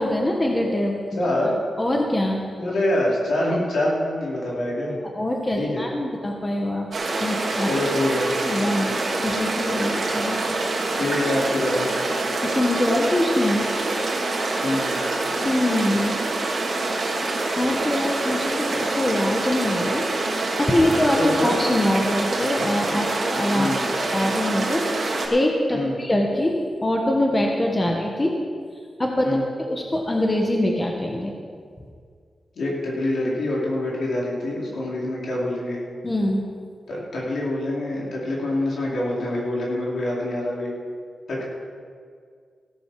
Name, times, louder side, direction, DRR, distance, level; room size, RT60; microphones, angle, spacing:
voice 1, 0.0-1.0 1.8-2.4 5.1-6.9 7.2-7.7 8.4-8.9 9.2-10.5 12.4-13.7 15.4-16.2 17.6-20.0 20.6-23.7 24.1-28.3 29.0-29.3 29.6-31.3 36.0-36.4, left 1 dB, 20° left, 0 dB, 1.2 m, -23 dB
voice 2, 1.2-1.5 2.6-5.0 5.6-5.9 7.6-8.3 11.0-11.9 14.6-14.9 21.2-21.5 23.5-23.8 25.7-26.0 29.2-29.5 32.6-35.8 36.9-40.7 41.3-41.4, left 1 dB, 70° left, -5 dB, 3.9 m, -25 dB
sound 1, 6.9-25.3, right 2 dB, 50° right, 2.5 m, -25 dB
16.0 x 12.0 x 4.7 m, 2.1 s
wide cardioid pair, 160°, 0 cm